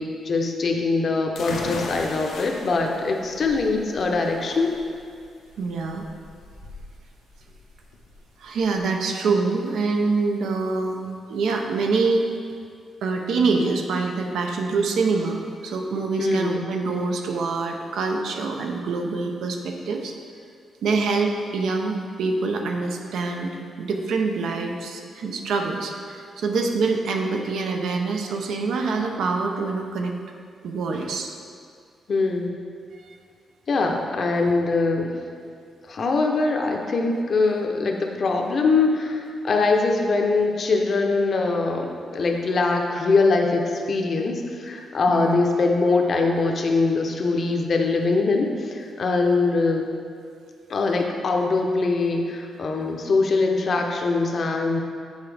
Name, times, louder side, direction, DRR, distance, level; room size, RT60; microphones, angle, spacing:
voice 1, 0.0-4.7 16.2-16.6 32.1-32.6 33.7-35.1 35.9-49.9 50.7-54.8, left 3 dB, 45° left, 2 dB, 0.6 m, -22 dB
sound 1, 1.3-8.8, left 3 dB, 85° left, 0.7 m, -38 dB
voice 2, 5.6-6.1 8.4-11.0 11.3-12.2 13.0-20.1 20.8-23.5 23.8-30.2 30.6-31.3 45.1-45.4, right 4 dB, 85° right, 2 dB, 0.6 m, -25 dB
8.1 x 4.1 x 3.4 m, 2.2 s
cardioid pair, 125°, 0 cm